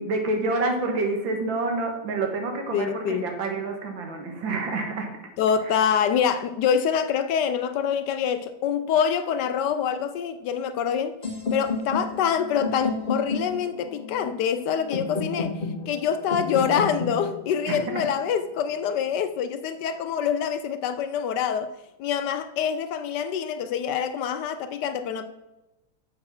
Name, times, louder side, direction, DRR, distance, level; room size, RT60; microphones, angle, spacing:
voice 1, 0.0-5.1 5.7-5.8 17.7-18.0, right 2 dB, 80° right, 2.3 m, -28 dB
voice 2, 2.7-3.3 5.4-11.2 11.5-21.7 22.0-25.3, left 7 dB, 70° left, 1.1 m, -25 dB
sound 1, 11.2-19.2, left 3 dB, 25° left, 1.9 m, -32 dB
7.4 x 6.2 x 5.9 m
omnidirectional pair, 2.1 m